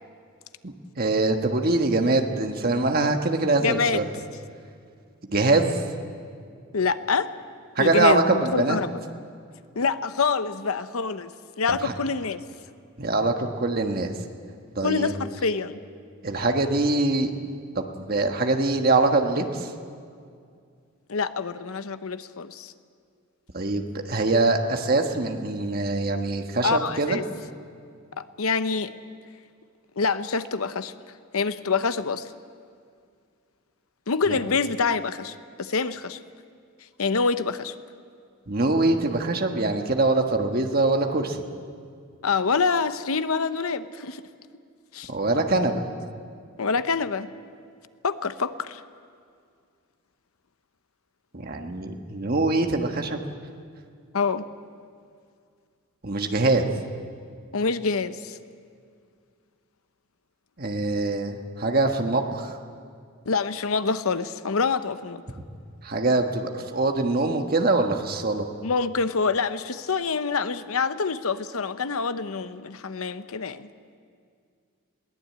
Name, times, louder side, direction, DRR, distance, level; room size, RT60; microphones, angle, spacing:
voice 1, 0.6-4.0 5.3-5.8 7.7-8.8 11.7-11.9 13.0-14.1 14.7-15.1 16.2-17.3 17.7-19.7 23.5-27.2 34.3-34.4 38.5-41.4 45.1-45.8 51.3-53.2 56.0-56.6 60.6-62.6 65.8-68.4, right 2 dB, 45° right, 4 dB, 1.5 m, -23 dB
voice 2, 3.6-4.0 6.7-7.3 7.8-9.0 9.8-11.3 11.6-12.4 14.8-15.8 21.1-22.7 26.6-27.2 28.2-28.9 30.0-30.9 31.3-32.3 34.1-36.2 37.0-37.7 42.2-44.2 44.9-45.1 46.6-47.3 48.0-48.8 54.1-54.5 57.5-58.4 63.3-65.2 68.6-73.7, left 4 dB, 80° left, 12 dB, 0.8 m, -26 dB
21.5 x 17.5 x 8.6 m, 2.2 s
head